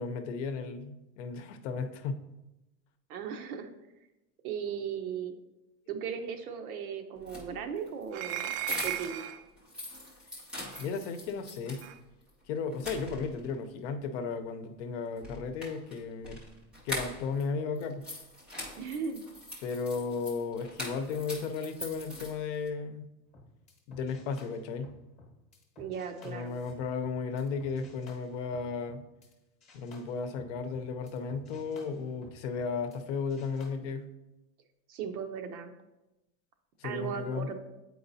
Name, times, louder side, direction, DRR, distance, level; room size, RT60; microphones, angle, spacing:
voice 1, 0.0-2.2 10.8-11.9 12.5-16.4 16.8-18.0 19.6-23.1 23.9-24.9 26.2-29.0 29.7-34.1 36.8-37.5, left 5 dB, 55° left, 8 dB, 0.7 m, -35 dB
voice 2, 3.1-3.7 4.4-5.3 5.9-9.3 18.8-19.2 25.8-26.5 34.9-35.7 36.8-37.5, right 7 dB, 85° right, 6 dB, 0.9 m, -37 dB
sound 1, 7.2-9.2 9.6-11.9 12.3-12.4 12.7-13.5 15.2-17.4 17.7-22.7, left 1 dB, 5° right, 0.4 m, -42 dB
sound 2, 8.1-9.4 10.7-10.9 11.8-12.0, right 13 dB, 65° right, 0.5 m, -36 dB
sound 3, 23.3-29.3 29.6-33.0 33.3-33.7, left 2 dB, 15° left, 0.9 m, -55 dB
8.0 x 4.7 x 2.7 m, 0.98 s
supercardioid pair, 150°, 43 cm